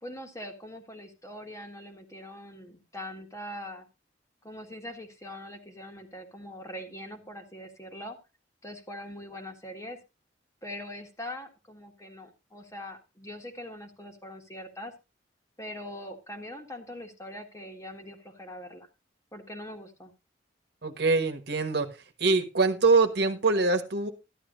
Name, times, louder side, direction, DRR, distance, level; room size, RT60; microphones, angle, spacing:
voice 1, 0.0-3.9 4.4-8.2 8.6-10.0 10.6-14.9 15.6-18.9 19.3-20.1, left 1 dB, 15° left, 1.7 m, -42 dB
voice 2, 20.8-21.9 22.2-24.1, right 3 dB, 60° right, 1.4 m, -24 dB
13.5 x 11.0 x 2.6 m
head